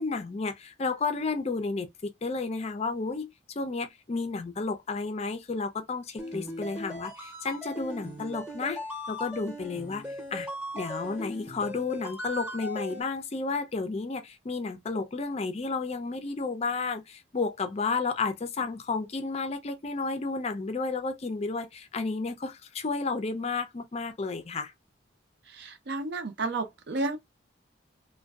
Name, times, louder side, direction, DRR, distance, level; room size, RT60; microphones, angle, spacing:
voice 1, 0.0-3.3 3.6-8.8 9.1-10.0 10.3-10.5 10.7-24.7, left 4 dB, 35° left, 0.4 m, -32 dB
sound 1, 6.2-13.0, left 1 dB, 5° right, 0.8 m, -38 dB
voice 2, 25.5-27.2, right 3 dB, 60° right, 0.6 m, -32 dB
2.5 x 2.2 x 2.2 m
head